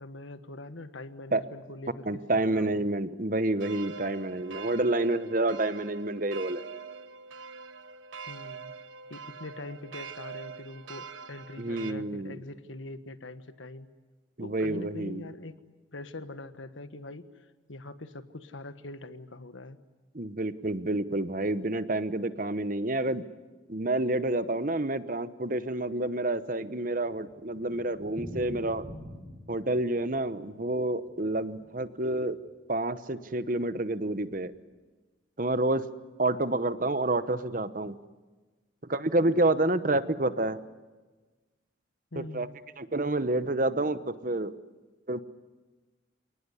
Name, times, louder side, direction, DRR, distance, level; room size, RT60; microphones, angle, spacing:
voice 1, 0.0-2.8 8.3-8.7 9.1-13.9 14.4-15.5 15.9-19.8 42.1-42.5, left 2 dB, 85° left, 11 dB, 1.5 m, -43 dB
voice 2, 2.1-6.6 11.6-12.4 14.4-15.2 20.1-23.2 23.7-28.9 29.5-32.4 32.7-34.5 35.4-35.8 36.2-38.0 38.9-40.6 42.2-42.5 42.8-44.5 45.1-45.2, right 2 dB, 45° right, 13 dB, 1.0 m, -28 dB
sound 1, 3.6-11.9, right 5 dB, 80° right, 0.9 m, -44 dB
Thunder, 26.5-32.5 32.8-32.9 33.2-33.3 33.5-33.6 34.2-34.5, equal, 15° left, 4.7 m, -46 dB
28.0 x 19.0 x 9.8 m, 1.2 s
head